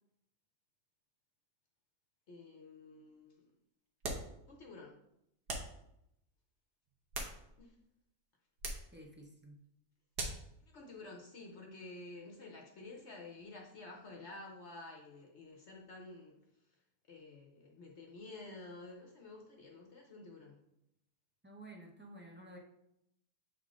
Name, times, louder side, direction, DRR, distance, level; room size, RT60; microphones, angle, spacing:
voice 1, 2.3-3.4 4.5-5.0 7.6-7.7 10.6-16.4 17.1-20.6, left 2 dB, 50° left, 0 dB, 1.0 m, -51 dB
sound 1, 4.0-4.4 5.5-5.8 6.9-7.8 8.6-8.9 10.1-10.5, right 2 dB, 90° right, 1.7 m, -41 dB
voice 2, 8.9-9.6 21.4-22.6, right 1 dB, 10° right, 0 dB, 0.5 m, -52 dB
7.5 x 3.7 x 3.7 m, 0.78 s
omnidirectional pair, 1.7 m